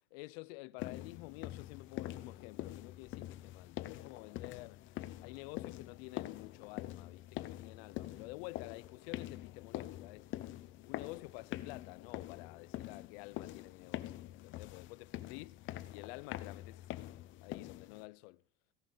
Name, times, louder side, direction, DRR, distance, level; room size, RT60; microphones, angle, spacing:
voice 1, 0.1-4.8 5.2-10.3 10.8-15.6 15.9-16.9 17.4-18.4, left 22 dB, 85° left, 0.6 m, -50 dB
sound 1, 0.8-18.1, left 15 dB, 40° left, 0.8 m, -45 dB
16.0 x 11.5 x 3.8 m
cardioid pair, 155°, 30 cm